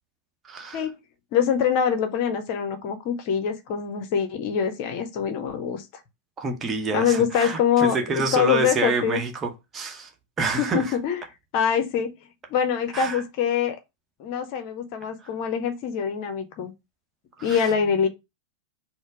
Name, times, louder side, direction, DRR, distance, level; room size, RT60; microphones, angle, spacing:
voice 1, 0.5-0.8 6.4-10.1 10.4-10.9 12.9-13.2 17.4-17.7, right 3 dB, 25° right, 0.9 m, -27 dB
voice 2, 1.3-5.9 6.9-9.2 10.6-11.2 11.5-12.1 12.5-13.8 14.2-16.7 17.4-18.1, left 7 dB, 45° left, 0.6 m, -24 dB
4.2 x 2.0 x 4.5 m
figure-of-eight pair, 90°, 0 cm